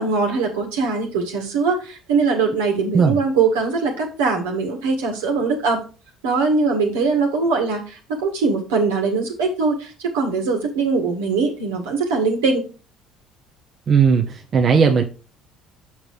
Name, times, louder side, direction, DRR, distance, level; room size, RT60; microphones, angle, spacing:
voice 1, 0.0-5.8 6.2-12.6, right 4 dB, 80° right, 2 dB, 2.0 m, -21 dB
voice 2, 13.9-15.0, right 6 dB, 45° right, 3 dB, 0.9 m, -16 dB
7.2 x 5.2 x 4.8 m, 0.35 s
hypercardioid pair, 60°, 0 cm